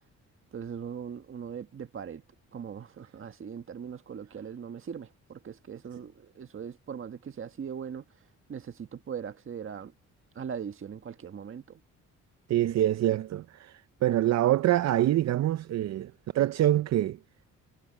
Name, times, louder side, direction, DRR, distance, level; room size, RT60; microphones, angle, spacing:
voice 1, 0.5-2.2 2.5-8.0 8.5-9.9 10.3-11.8, right 7 dB, 45° right, 1.6 m, -40 dB
voice 2, 12.5-17.2, right 13 dB, 60° right, 0.6 m, -25 dB
cardioid pair, 90°, 30 cm